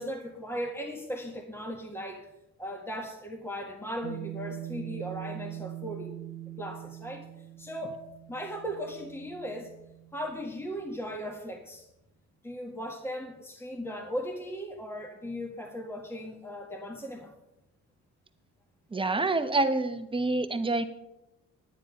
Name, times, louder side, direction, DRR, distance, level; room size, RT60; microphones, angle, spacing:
voice 1, 0.0-2.3 2.6-6.2 6.6-7.3 7.6-7.9 8.3-9.7 10.1-11.9 12.4-17.3, equal, 10° left, 1 dB, 1.7 m, -37 dB
sound 1, 4.0-10.7, right 15 dB, 60° right, 1.0 m, -43 dB
voice 2, 18.9-20.8, right 2 dB, 15° right, 9 dB, 1.0 m, -27 dB
9.8 x 9.6 x 5.3 m, 0.89 s
cardioid pair, 90°, 30 cm